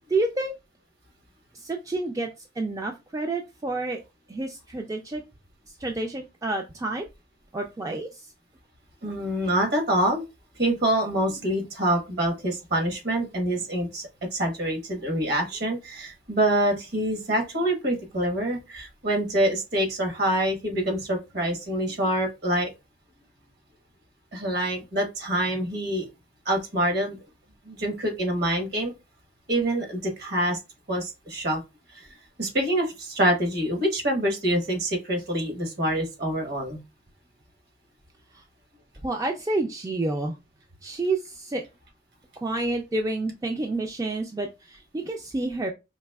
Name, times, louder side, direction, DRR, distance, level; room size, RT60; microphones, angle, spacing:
voice 1, 0.1-0.5 1.5-2.3 2.6-4.0 4.3-5.2 5.8-7.0 7.5-8.3 38.3-38.4 39.0-40.4 40.8-41.6 42.4-45.7, right 2 dB, 20° right, 3 dB, 0.3 m, -29 dB
voice 2, 9.0-10.2 10.6-22.7 24.3-26.1 26.4-27.2 27.6-28.9 29.5-30.6 30.9-31.6 31.9-32.1 32.4-36.8, right 1 dB, 55° right, 2 dB, 1.2 m, -26 dB
4.1 x 2.9 x 2.3 m, 0.25 s
head